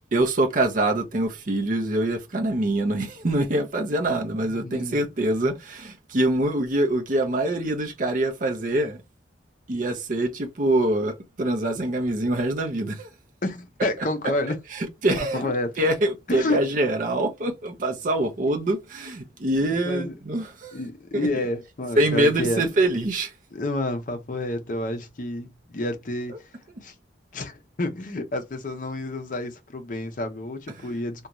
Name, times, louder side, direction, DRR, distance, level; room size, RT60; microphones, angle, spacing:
voice 1, 0.1-9.0 9.7-13.1 14.7-15.5 15.8-20.8 21.1-21.3 22.0-23.3 30.8-30.9, right 1 dB, 45° right, 0.5 m, -24 dB
voice 2, 4.4-5.0 13.4-14.6 15.3-15.8 16.3-16.6 19.8-20.2 20.7-22.6 23.5-26.3 26.8-26.9 27.3-31.3, left 1 dB, 45° left, 0.5 m, -29 dB
2.5 x 2.2 x 2.9 m
head